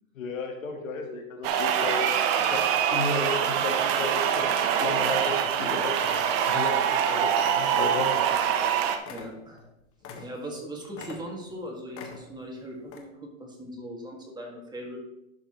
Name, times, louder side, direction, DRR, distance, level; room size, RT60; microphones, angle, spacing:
voice 1, 0.2-2.1 2.4-2.6 2.9-4.5 4.8-6.0 6.5-8.1, left 2 dB, 75° left, 3 dB, 1.9 m, -33 dB
sound 1, 1.4-9.0, right 8 dB, 45° right, 1.1 m, -24 dB
sound 2, 5.5-5.6 5.9-6.3 7.0-7.3 7.6-7.7 8.1-8.3 8.6-8.7 9.0-10.6 10.9-11.6 11.9-12.5 12.8-13.0, left 5 dB, 35° left, 1.6 m, -44 dB
voice 2, 9.1-9.7 10.2-15.0, equal, 10° right, -1 dB, 2.1 m, -39 dB
11.0 x 7.1 x 3.1 m, 0.86 s
hypercardioid pair, 110°, 40 cm